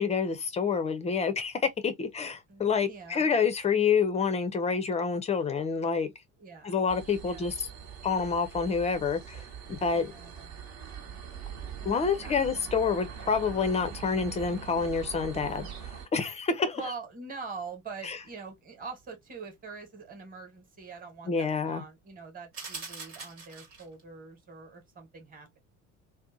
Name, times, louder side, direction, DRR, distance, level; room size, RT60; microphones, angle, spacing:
voice 1, 0.0-6.1 6.6-7.7 8.0-9.4 9.7-10.1 11.8-16.8 18.0-18.2 21.3-21.8, left 5 dB, 15° left, 0.3 m, -28 dB
voice 2, 2.5-3.3 6.4-6.8 7.2-7.5 9.9-10.6 11.0-11.2 11.8-12.7 16.8-25.6, right 4 dB, 20° right, 1.1 m, -44 dB
sound 1, 6.9-16.1, right 7 dB, 65° right, 1.0 m, -42 dB
sound 2, 22.5-24.0, right 4 dB, 80° right, 1.4 m, -42 dB
2.6 x 2.2 x 2.5 m
hypercardioid pair, 65°, 43 cm